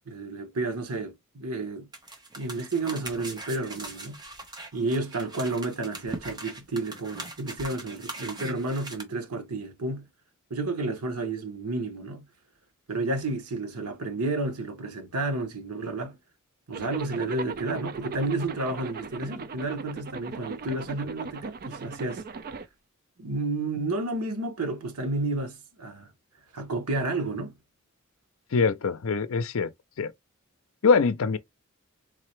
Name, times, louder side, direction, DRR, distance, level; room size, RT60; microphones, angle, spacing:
voice 1, 0.1-1.9 2.4-4.2 4.7-10.1 10.5-12.3 12.9-16.2 16.7-22.2 23.2-26.1 26.5-27.5, right 2 dB, 85° right, 1.1 m, -31 dB
sound 1, 1.9-9.0, right 2 dB, 20° right, 0.9 m, -41 dB
Zipper (clothing), 16.7-22.7, right 4 dB, 40° right, 0.4 m, -39 dB
voice 2, 28.5-29.7 30.0-30.1 30.8-31.4, left 5 dB, 65° left, 0.5 m, -23 dB
3.8 x 2.9 x 3.2 m
head